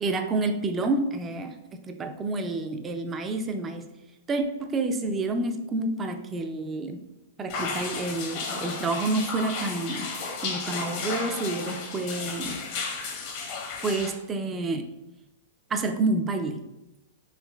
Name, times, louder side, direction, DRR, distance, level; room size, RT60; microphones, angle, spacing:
voice 1, 0.0-3.9 4.3-7.0 7.4-10.1 10.4-12.6 13.8-14.8 15.7-16.6, right 2 dB, 20° right, 6 dB, 0.4 m, -29 dB
sound 1, 7.5-14.1, left 4 dB, 50° left, 0.9 m, -33 dB
4.5 x 3.0 x 2.3 m, 0.94 s
hypercardioid pair, 120°, 0 cm